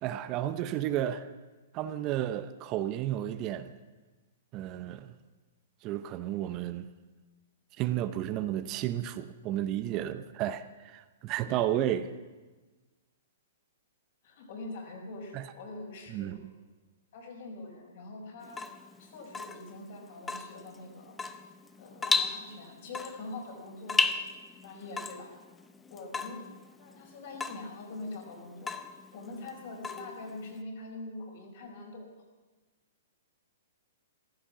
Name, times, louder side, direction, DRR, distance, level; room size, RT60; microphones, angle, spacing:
voice 1, 0.0-1.3 1.7-3.7 4.5-5.1 5.8-6.9 7.8-12.1 15.3-15.5 16.1-16.4, right 12 dB, 35° right, 0.6 m, -32 dB
voice 2, 14.2-16.4 17.1-18.6 19.0-21.2 21.8-24.2 24.6-25.3 25.9-26.5 26.8-28.7 29.1-32.1, left 2 dB, 55° left, 4.7 m, -44 dB
Water tap faucet / Drip, 18.4-30.6, left 4 dB, 10° left, 0.6 m, -35 dB
14.5 x 13.0 x 6.0 m
hypercardioid pair, 140°, 0 cm